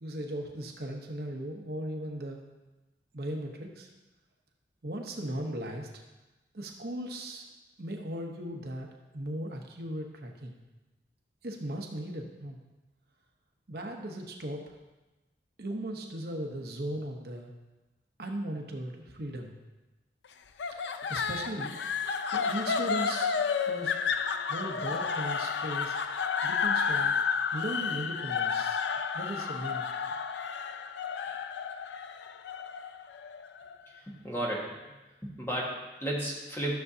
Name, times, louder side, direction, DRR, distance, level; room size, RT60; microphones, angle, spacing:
voice 1, 0.0-2.4 3.1-3.9 4.8-5.9 6.5-7.4 7.8-8.9 9.1-10.5 11.4-12.6 13.7-14.8 15.6-17.5 18.2-19.6 20.8-21.8 22.3-23.4 23.7-24.0 24.5-26.0 26.4-28.8 29.1-29.9, right 1 dB, 60° right, 2 dB, 0.9 m, -37 dB
sound 1, 20.6-33.8, left 6 dB, 80° left, 0.5 m, -31 dB
voice 2, 33.9-34.9 35.2-36.7, right 1 dB, 15° left, -4 dB, 1.5 m, -34 dB
12.5 x 6.7 x 2.7 m, 1.1 s
head